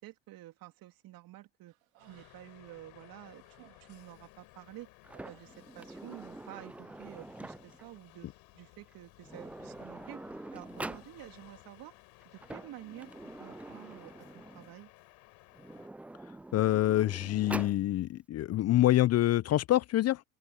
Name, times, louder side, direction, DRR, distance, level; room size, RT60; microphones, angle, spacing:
voice 1, 0.0-1.7 2.0-4.9 5.2-10.2 10.5-11.9 12.2-13.1 13.4-14.9, right 15 dB, 55° right, 3.4 m, -50 dB
Human voice, 1.7-2.7 3.1-6.1 6.4-7.2, right 17 dB, 80° right, 3.9 m, -64 dB
sound 1, 2.0-17.1, left 25 dB, 65° left, 7.6 m, -58 dB
Sliding door, 5.0-7.9 8.9-9.0 9.2-11.1 12.2-14.7 15.5-17.8, right 2 dB, 5° right, 0.3 m, -45 dB
voice 2, 16.5-20.2, left 14 dB, 40° left, 0.7 m, -26 dB
open air
hypercardioid pair, 80°, 40 cm